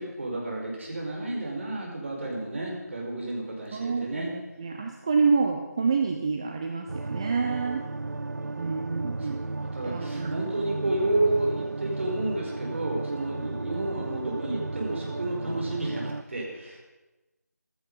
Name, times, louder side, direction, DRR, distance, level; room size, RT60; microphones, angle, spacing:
voice 1, 0.0-4.3 7.9-16.8, right 2 dB, 45° right, -1 dB, 5.1 m, -31 dB
voice 2, 3.7-7.8 8.6-9.4 9.8-10.3, right 5 dB, 20° right, 4 dB, 0.6 m, -28 dB
sound 1, 6.9-16.2, right 3 dB, 70° right, 0.5 m, -34 dB
15.0 x 13.5 x 5.7 m, 1.1 s
figure-of-eight pair, 165°, 9 cm